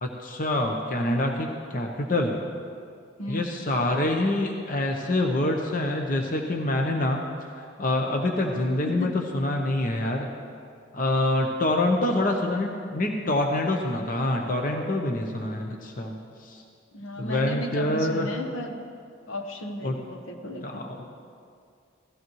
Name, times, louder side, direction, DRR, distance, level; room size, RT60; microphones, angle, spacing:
voice 1, 0.0-2.4 3.3-10.3 10.9-16.6 17.2-18.3 19.8-20.0 20.6-21.1, left 1 dB, 40° left, 2 dB, 0.8 m, -26 dB
voice 2, 3.2-3.6 8.8-9.2 12.1-12.2 16.9-18.8 19.3-20.9, left 1 dB, 90° left, 3 dB, 1.1 m, -34 dB
16.5 x 14.5 x 3.1 m, 2.3 s
head